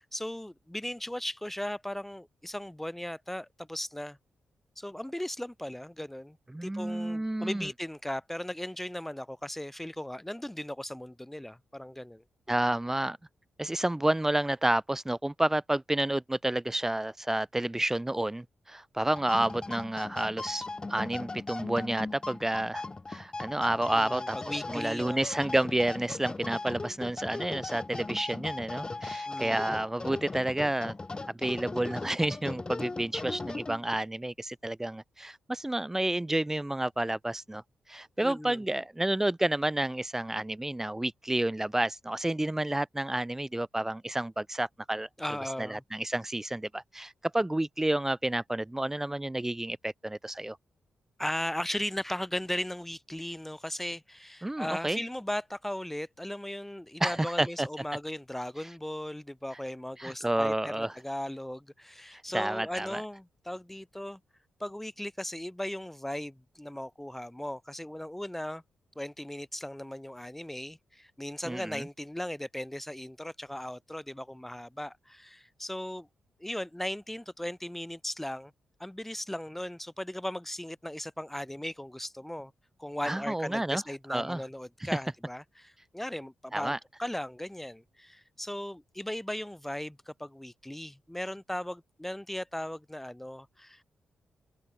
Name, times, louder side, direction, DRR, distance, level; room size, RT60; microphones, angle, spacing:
voice 1, 0.1-4.2 4.8-6.4 6.6-12.2 23.9-25.3 29.3-29.7 38.2-38.6 45.2-45.8 51.2-64.2 64.6-68.6 68.9-76.1 76.4-78.5 78.8-82.5 82.8-86.7 87.0-93.8, left 1 dB, 10° left, 4.8 m, -37 dB
voice 2, 6.5-7.7 12.5-13.2 13.6-20.6 20.9-30.9 31.3-37.6 37.9-45.1 45.6-50.6 54.4-55.0 57.0-57.7 60.0-60.9 62.1-63.0 71.4-71.9 83.0-83.8 84.1-84.4 84.8-84.9 86.5-86.8, right 1 dB, 15° right, 1.7 m, -30 dB
sound 1, 19.0-34.0, left 3 dB, 30° left, 2.0 m, -38 dB
open air
supercardioid pair, 45°, 3 cm